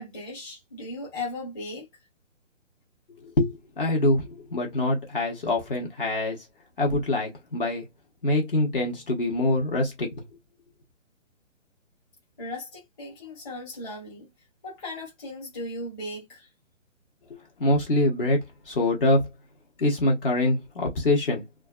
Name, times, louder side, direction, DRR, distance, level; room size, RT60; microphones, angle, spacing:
voice 1, 0.0-1.9 12.4-14.3 14.6-16.5, left 2 dB, 15° left, 1.0 m, -37 dB
voice 2, 3.2-6.4 6.8-7.8 8.2-10.2 17.6-19.3 19.8-21.4, left 2 dB, 45° left, 1.0 m, -24 dB
2.5 x 2.3 x 2.4 m
hypercardioid pair, 160°, 39 cm